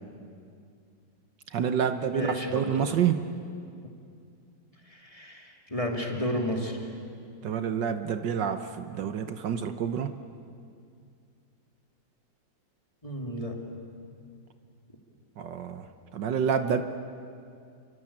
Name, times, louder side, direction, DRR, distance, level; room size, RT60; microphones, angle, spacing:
voice 1, 1.5-3.2 7.4-10.1 15.4-15.9 16.1-16.8, right 7 dB, 70° right, 9 dB, 1.6 m, -28 dB
voice 2, 2.1-2.9 4.9-6.9 13.0-13.6, equal, 15° left, 1 dB, 2.9 m, -32 dB
28.5 x 24.0 x 8.7 m, 2.4 s
omnidirectional pair, 2.1 m